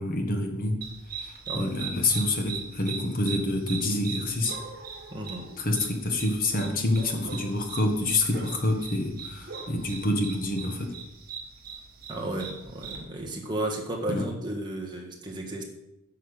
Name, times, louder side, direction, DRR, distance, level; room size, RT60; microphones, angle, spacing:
voice 1, 0.0-4.5 5.6-10.9 14.1-14.3, left 2 dB, 40° left, 3 dB, 1.4 m, -27 dB
sound 1, 0.8-13.0, right 5 dB, 45° right, 1.9 m, -40 dB
voice 2, 1.5-1.8 5.1-5.5 12.1-15.6, right 1 dB, 20° right, -1 dB, 1.6 m, -33 dB
9.5 x 5.8 x 6.5 m, 0.88 s
head